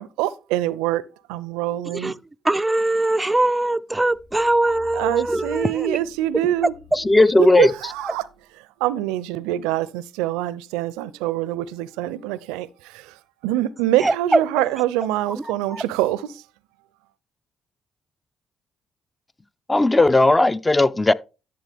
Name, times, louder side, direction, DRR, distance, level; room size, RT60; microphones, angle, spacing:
voice 1, 0.0-2.2 5.0-6.7 7.4-8.3 8.6-16.5, right 14 dB, 85° right, 0.5 m, -25 dB
voice 2, 2.4-6.0 14.0-14.4 15.7-15.8, right 2 dB, 20° right, 0.4 m, -21 dB
sound 1, 4.1-8.4 8.9-9.0, left 3 dB, 60° left, 2.0 m, -49 dB
voice 3, 7.0-7.7 19.7-21.1, left 2 dB, 20° left, 0.6 m, -16 dB
11.5 x 7.1 x 3.5 m
hypercardioid pair, 45°, 0 cm